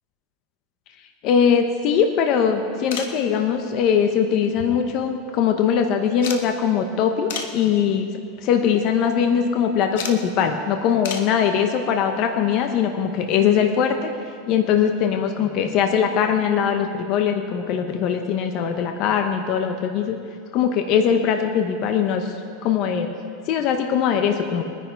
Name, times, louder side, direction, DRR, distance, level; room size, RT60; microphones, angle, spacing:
voice 1, 1.2-8.1 8.4-14.1 14.5-20.2 20.5-22.3 22.6-23.1 23.5-24.6, left 7 dB, 40° left, 5 dB, 0.9 m, -21 dB
sound 1, 2.9-3.2 4.5-5.1 5.4-5.5 6.2-6.5 7.3-7.6 8.3-8.5 10.0-10.2 11.0-11.3 13.0-13.1 14.5-14.6 14.8-14.9, left 7 dB, 70° left, 1.4 m, -32 dB
22.0 x 10.0 x 4.6 m, 2.3 s
supercardioid pair, 165°, 0 cm